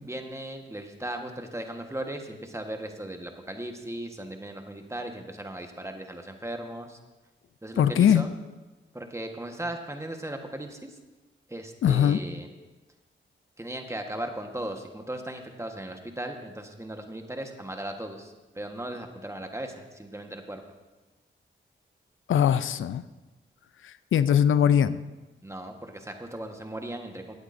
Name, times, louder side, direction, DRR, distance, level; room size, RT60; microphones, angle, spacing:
voice 1, 0.0-7.0 7.6-8.3 8.9-11.0 11.5-12.5 13.6-20.6 25.4-27.3, right 1 dB, 15° right, 4 dB, 1.3 m, -37 dB
voice 2, 7.8-8.3 11.8-12.2 22.3-23.0 23.8-25.0, left 9 dB, 70° left, 14 dB, 0.4 m, -21 dB
18.0 x 8.0 x 2.6 m, 1.2 s
cardioid pair, 55°, 21 cm